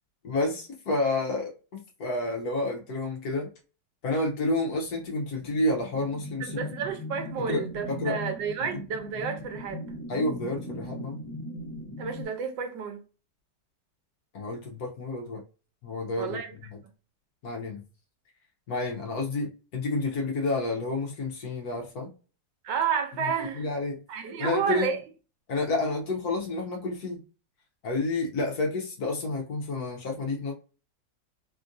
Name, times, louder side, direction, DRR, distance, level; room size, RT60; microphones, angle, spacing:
voice 1, 0.2-3.5 4.0-6.7 7.4-8.2 10.1-11.2 14.3-15.4 15.8-16.4 16.7-16.8 17.4-17.8 18.7-22.1 23.5-23.9 24.4-24.9 25.5-27.2 27.8-30.5, left 2 dB, 65° left, 1.2 m, -30 dB
sound 1, 5.6-12.2, equal, 25° left, 0.4 m, -39 dB
voice 2, 6.4-9.8 12.0-13.0 16.1-16.5 22.6-23.6 24.1-25.0, right 7 dB, 85° right, 1.4 m, -31 dB
3.5 x 2.5 x 2.5 m
omnidirectional pair, 1.9 m